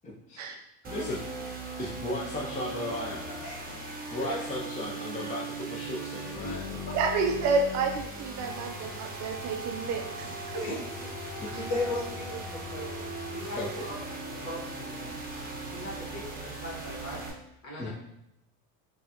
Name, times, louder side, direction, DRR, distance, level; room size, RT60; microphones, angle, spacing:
sound 1, 0.8-17.3, right 2 dB, 20° right, 0.7 m, -38 dB
voice 1, 0.9-1.2 1.8-3.4 4.1-6.9 11.4-11.5 13.5-13.9 17.8-17.9, left 1 dB, 20° left, -5 dB, 0.5 m, -35 dB
voice 2, 3.4-4.4 6.4-6.9 10.5-13.0 13.3-14.0 14.3-17.2 17.6-17.9, left 1 dB, 45° left, -3 dB, 1.4 m, -38 dB
voice 3, 6.9-10.4, right 4 dB, 45° right, 3 dB, 0.4 m, -29 dB
3.6 x 2.3 x 2.8 m, 0.84 s
supercardioid pair, 95°, 41 cm